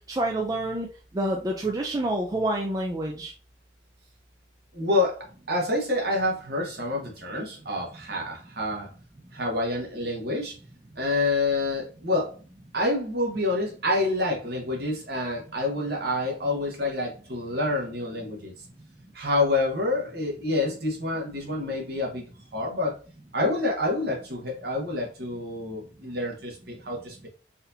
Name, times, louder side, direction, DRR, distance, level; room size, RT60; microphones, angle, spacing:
voice 1, 0.1-3.3, right 1 dB, 20° right, 0 dB, 0.4 m, -28 dB
voice 2, 4.7-8.9 9.3-10.5 11.0-12.3 12.7-18.5 19.1-22.2 22.5-23.0 23.3-27.3, left 2 dB, 60° right, -1 dB, 1.2 m, -27 dB
4.1 x 2.7 x 2.7 m, 0.36 s
head